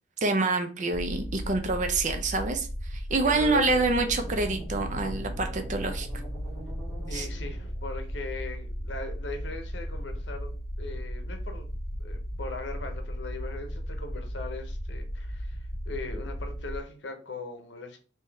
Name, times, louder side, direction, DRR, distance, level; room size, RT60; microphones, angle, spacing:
voice 1, 0.2-6.1 7.1-7.3, right 3 dB, 40° right, 6 dB, 0.5 m, -27 dB
sound 1, 0.9-16.8, equal, 15° left, 0.4 m, -36 dB
voice 2, 3.2-3.8 7.1-11.7 12.0-15.6 15.8-18.0, left 3 dB, 65° left, 5 dB, 0.8 m, -39 dB
sound 2, 3.8-8.1, right 1 dB, 15° right, 1.2 m, -46 dB
3.5 x 2.7 x 3.4 m, 0.37 s
head